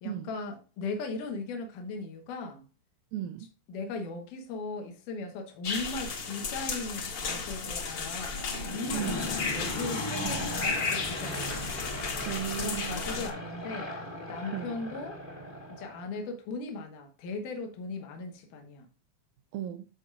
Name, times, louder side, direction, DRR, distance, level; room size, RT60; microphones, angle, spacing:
voice 1, 0.0-2.6 3.7-11.5 12.6-13.9 14.3-15.2 15.7-18.9, left 3 dB, 80° left, 2.7 m, -38 dB
voice 2, 3.1-3.5 8.9-9.3 10.2-10.5 12.3-13.1 14.5-14.8 19.5-19.9, right 11 dB, 80° right, 1.8 m, -36 dB
sound 1, 5.6-13.3, left 4 dB, 50° left, 1.8 m, -34 dB
Aircraft / Engine, 8.2-16.2, left 1 dB, 25° left, 0.6 m, -38 dB
13.5 x 4.9 x 2.4 m
omnidirectional pair, 3.7 m